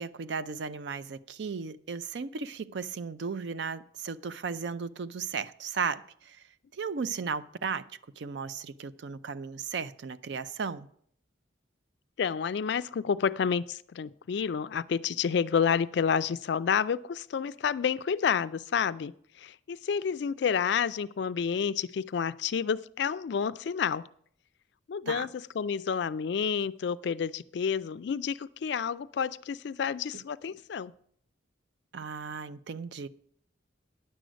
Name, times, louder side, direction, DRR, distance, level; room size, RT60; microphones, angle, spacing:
voice 1, 0.0-6.4 6.8-7.9 8.2-10.9 25.1-25.3 31.9-33.1, right 5 dB, 60° right, 0.4 m, -35 dB
voice 2, 12.2-24.1 24.9-30.9, left 7 dB, 60° left, 0.3 m, -29 dB
9.9 x 7.7 x 5.1 m
head